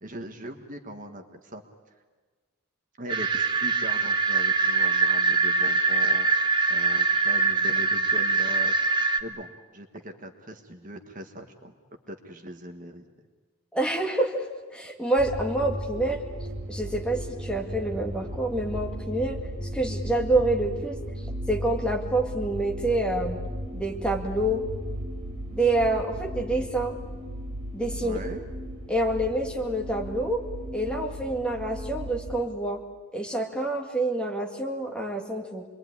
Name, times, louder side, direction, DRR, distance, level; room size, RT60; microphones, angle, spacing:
voice 1, 0.0-1.6 1.9-2.0 3.0-8.7 9.2-11.7 12.1-13.1 28.0-28.5, equal, 35° right, 5 dB, 1.5 m, -40 dB
sound 1, 3.1-9.2, right 4 dB, 20° right, 1.1 m, -23 dB
voice 2, 13.7-14.5 14.7-16.2 16.7-19.4 19.7-21.0 21.5-23.4 23.7-24.6 25.5-27.0 27.7-28.2 28.9-30.4 30.7-32.8 33.1-35.7, right 1 dB, 5° left, 1 dB, 2.1 m, -27 dB
sound 2, 15.2-32.4, equal, 75° right, 3.4 m, -36 dB
26.5 x 22.0 x 9.7 m, 1.4 s
head